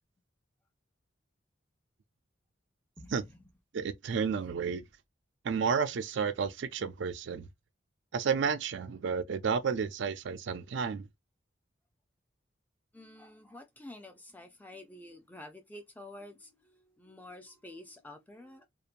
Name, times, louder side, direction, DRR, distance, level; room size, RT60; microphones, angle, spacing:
voice 1, 3.0-3.5 12.9-18.7, left 1 dB, 10° left, 0.4 m, -49 dB
voice 2, 3.7-4.8 5.4-7.5 8.1-11.1, right 6 dB, 65° right, 0.4 m, -31 dB
2.8 x 2.1 x 2.4 m
head